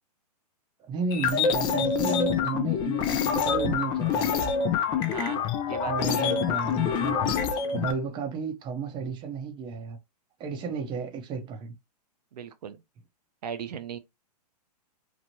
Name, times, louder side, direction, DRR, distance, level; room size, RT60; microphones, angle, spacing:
voice 1, 0.9-4.3 5.8-7.3 7.7-10.0 10.4-11.7, right 5 dB, 20° right, 0.6 m, -33 dB
sound 1, 1.1-7.9, left 7 dB, 20° left, 0.4 m, -26 dB
voice 2, 5.1-6.3 12.3-12.8 13.4-14.0, right 7 dB, 75° right, 0.5 m, -37 dB
3.0 x 2.1 x 2.7 m
hypercardioid pair, 130°, 21 cm